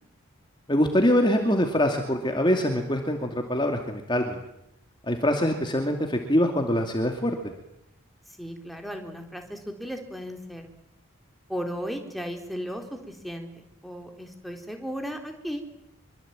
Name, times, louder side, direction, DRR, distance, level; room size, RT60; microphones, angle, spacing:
voice 1, 0.7-4.4 5.0-7.5, equal, 20° left, 4 dB, 2.5 m, -24 dB
voice 2, 8.4-10.7 11.5-15.6, equal, ahead, 3 dB, 3.8 m, -35 dB
25.5 x 24.0 x 9.1 m, 0.80 s
head